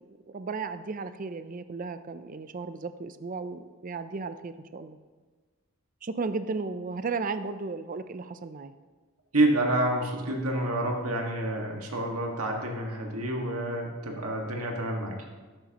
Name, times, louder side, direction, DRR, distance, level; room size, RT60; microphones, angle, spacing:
voice 1, 0.1-5.0 6.0-8.7, right 4 dB, 40° right, 11 dB, 0.4 m, -35 dB
voice 2, 9.3-15.2, right 1 dB, 85° right, 1 dB, 1.8 m, -28 dB
13.5 x 11.0 x 3.0 m, 1.4 s
head